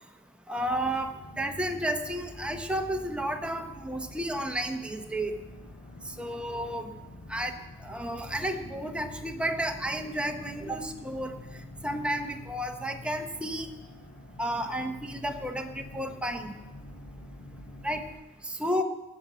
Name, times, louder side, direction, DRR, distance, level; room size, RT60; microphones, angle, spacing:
voice 1, 0.5-5.4 6.2-6.9 7.3-7.5 7.8-11.3 11.8-13.7 14.4-16.6 17.8-18.0 18.4-18.8, right 1 dB, 5° right, 4 dB, 0.8 m, -32 dB
sound 1, 0.6-18.1, left 1 dB, 80° left, 5.4 m, -46 dB
12.5 x 8.1 x 7.3 m, 1.2 s
head